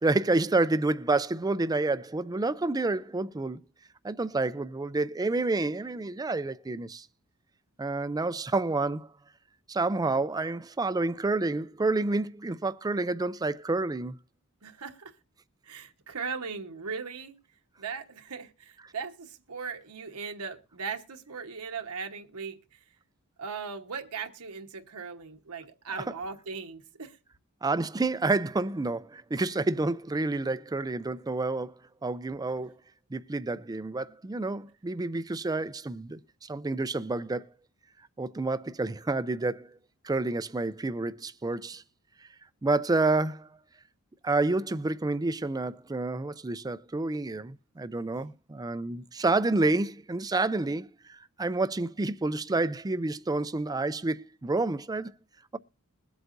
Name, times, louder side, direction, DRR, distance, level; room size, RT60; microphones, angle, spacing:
voice 1, 0.0-3.6 4.0-7.1 7.8-9.1 9.7-14.2 27.6-31.7 32.0-32.7 33.1-37.5 38.2-39.8 40.0-41.8 42.6-43.5 44.2-55.1, right 2 dB, 15° right, 0.4 m, -29 dB
voice 2, 14.6-15.1 15.6-17.3 17.8-22.6 23.4-27.2, right 5 dB, 80° right, 1.2 m, -38 dB
21.5 x 7.9 x 2.6 m
head